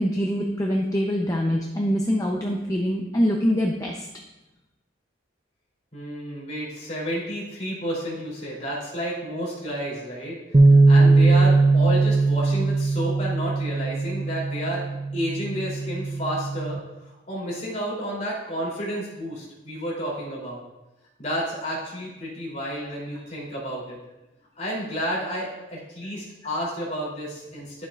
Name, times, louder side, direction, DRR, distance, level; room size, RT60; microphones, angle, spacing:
voice 1, 0.0-4.1, equal, 20° left, 0 dB, 0.6 m, -24 dB
voice 2, 5.9-10.4 10.7-14.8 15.1-16.8 17.0-20.6 21.2-24.0 24.5-27.9, equal, 35° left, -5 dB, 3.1 m, -31 dB
sound 1, 10.5-16.8, right 3 dB, 30° right, 0.5 m, -20 dB
11.5 x 7.1 x 2.5 m, 0.98 s
head